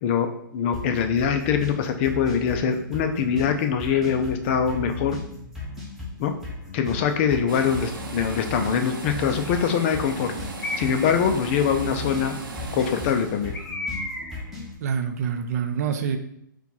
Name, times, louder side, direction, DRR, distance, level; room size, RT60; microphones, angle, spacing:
voice 1, 0.0-5.2 6.2-6.4 6.7-10.3 10.8-12.4 12.7-13.5, left 7 dB, 35° left, 7 dB, 0.5 m, -23 dB
sound 1, 0.7-14.7, left 2 dB, ahead, 1.1 m, -37 dB
sound 2, 7.5-13.7, right 3 dB, 90° right, 0.8 m, -37 dB
Bird, 8.2-8.6 9.4-10.0 10.6-11.2 13.5-14.5, left 2 dB, 65° left, 1.0 m, -35 dB
voice 2, 14.8-16.2, right 7 dB, 50° right, 7 dB, 0.5 m, -26 dB
4.4 x 2.3 x 4.0 m, 0.73 s
hypercardioid pair, 140°, 11 cm